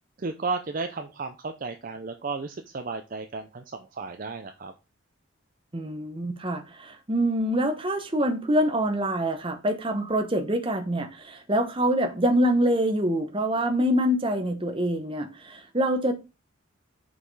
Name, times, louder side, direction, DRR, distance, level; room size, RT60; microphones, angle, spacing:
voice 1, 0.2-4.7, right 4 dB, 45° right, 0.5 m, -33 dB
voice 2, 5.7-16.1, equal, 25° right, 0.9 m, -25 dB
5.6 x 4.8 x 4.0 m
head